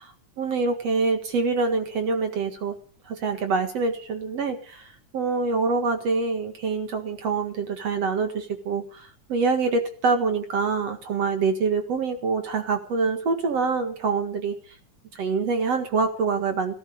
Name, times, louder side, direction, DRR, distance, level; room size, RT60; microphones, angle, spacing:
voice 1, 0.0-2.7 3.0-14.6 15.1-16.8, right 4 dB, 55° right, 7 dB, 2.7 m, -25 dB
18.0 x 12.5 x 6.5 m, 0.43 s
omnidirectional pair, 3.6 m